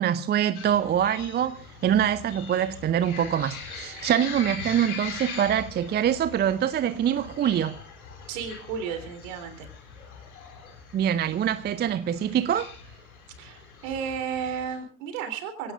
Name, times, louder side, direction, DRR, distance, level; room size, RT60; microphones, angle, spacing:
voice 1, 0.0-7.8 10.9-12.7, right 10 dB, 25° right, 0.6 m, -24 dB
sound 1, 0.5-14.8, left 5 dB, 70° left, 4.1 m, -42 dB
voice 2, 8.3-9.7 13.4-15.7, right 7 dB, 60° right, 3.6 m, -33 dB
25.5 x 17.0 x 2.5 m
figure-of-eight pair, 65°, 44 cm